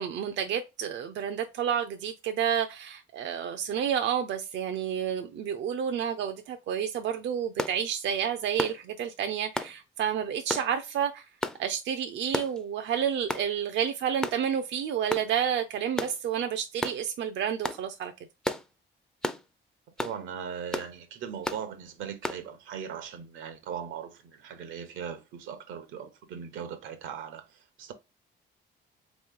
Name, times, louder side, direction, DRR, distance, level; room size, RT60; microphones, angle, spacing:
voice 1, 0.0-11.3 11.6-18.1, right 8 dB, 70° right, 0.5 m, -30 dB
sound 1, 7.6-7.8 8.6-8.8 9.6-9.7 10.5-10.7 11.4-11.6 12.3-12.6 13.3-13.5 14.2-14.4 15.1-15.3 16.0-16.2 16.8-17.0 17.6-17.8 18.4-18.7 19.2-19.4 20.0-20.2 20.7-20.9 21.4-21.6 22.2-22.4, left 1 dB, 5° left, 0.4 m, -32 dB
voice 2, 20.0-27.9, right 8 dB, 90° right, 0.9 m, -39 dB
3.7 x 3.1 x 3.6 m
cardioid pair, 100°, 19 cm